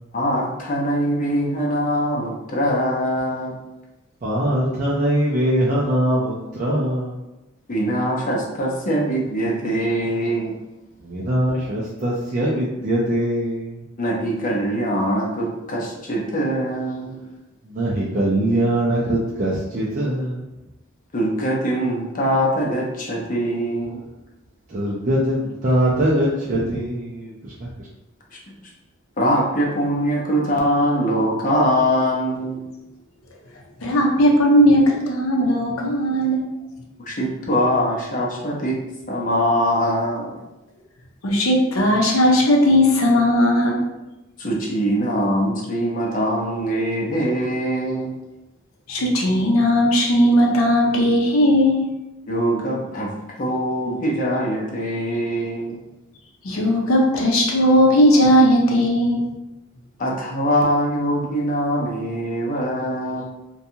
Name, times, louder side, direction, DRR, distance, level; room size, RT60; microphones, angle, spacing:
voice 1, 0.1-3.5 7.7-10.6 14.0-17.2 21.1-24.0 29.2-32.6 37.1-38.8 39.1-40.4 44.4-48.1 52.3-53.1 53.4-55.8 60.0-63.2, equal, 40° left, -2 dB, 0.5 m, -22 dB
voice 2, 4.2-7.2 11.0-13.8 17.6-20.5 24.7-27.9, right 1 dB, 40° right, -7 dB, 0.4 m, -22 dB
voice 3, 33.8-36.4 41.2-43.8 48.9-51.9 56.4-59.3, equal, 80° left, -1 dB, 0.6 m, -17 dB
2.6 x 2.3 x 2.7 m, 0.98 s
head